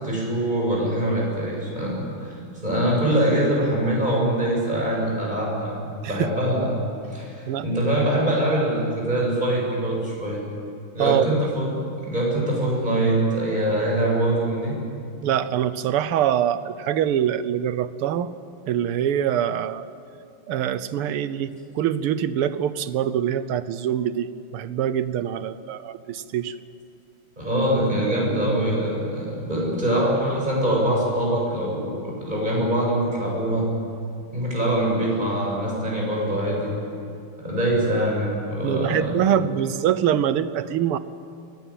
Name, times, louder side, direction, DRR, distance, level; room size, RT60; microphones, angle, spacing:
voice 1, 0.0-6.7 7.1-10.4 10.9-11.7 12.0-14.8 27.4-33.7 34.3-36.7 37.4-39.2, right 1 dB, 20° right, -4 dB, 8.3 m, -23 dB
voice 2, 11.0-11.4 15.2-18.3 18.7-19.9 20.5-21.5 21.8-26.6 38.6-41.0, right 10 dB, 85° right, 14 dB, 1.8 m, -24 dB
23.5 x 18.5 x 9.2 m, 2.6 s
omnidirectional pair, 2.4 m